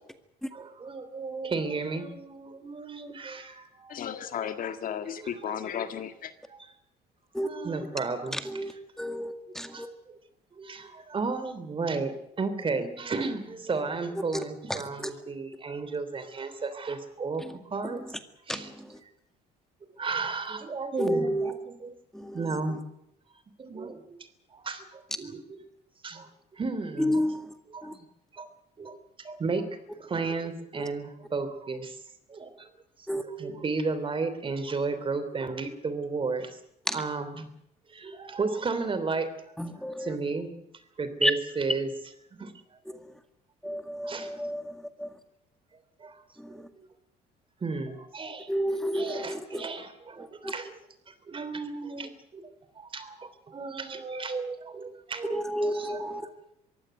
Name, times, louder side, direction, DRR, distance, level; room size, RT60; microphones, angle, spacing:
voice 1, 0.5-4.0 5.2-5.6 6.5-6.6 7.4-8.8 9.7-10.2 10.5-18.2 18.5-18.7 20.0-22.0 22.3-22.8 23.6-24.2 24.5-25.6 26.0-27.3 27.7-28.1 28.3-28.5 28.8-29.7 29.9-32.0 32.3-32.7 33.2-36.6 36.9-37.5 37.9-39.3 39.7-40.6 41.0-41.9 42.3-43.0 43.6-43.8 44.0-44.5 46.0-46.2 46.5-46.9 47.6-48.5 48.9-50.8 51.1-56.3, right 4 dB, 30° right, 12 dB, 3.2 m, -34 dB
voice 2, 3.9-6.3, left 8 dB, 55° left, 9 dB, 1.8 m, -34 dB
voice 3, 9.0-9.9 18.5-18.7 21.0-21.5 22.1-22.4 27.0-27.5 27.8-27.9 33.1-33.2 36.9-37.0 39.6-40.1 41.2-41.3 43.6-44.7 45.0-45.1 48.5-49.6 50.4-50.5 55.3-56.3, equal, 5° left, 8 dB, 2.0 m, -30 dB
22.5 x 16.0 x 9.4 m, 0.79 s
cardioid pair, 110°, 17 cm